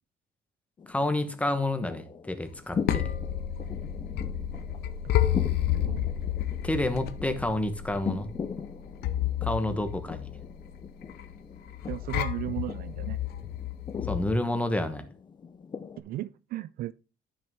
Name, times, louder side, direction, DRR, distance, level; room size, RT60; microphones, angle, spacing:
sound 1, 0.8-16.0, left 6 dB, 25° left, 0.5 m, -40 dB
voice 1, 0.9-3.1 6.6-8.3 9.4-10.3 14.1-15.0, left 1 dB, 10° left, 1.2 m, -29 dB
sound 2, 2.5-14.4, left 11 dB, 75° left, 0.8 m, -31 dB
voice 2, 5.7-6.1 11.9-13.2 16.0-16.9, right 15 dB, 60° right, 0.4 m, -36 dB
10.0 x 6.2 x 3.5 m
cardioid pair, 110°, 17 cm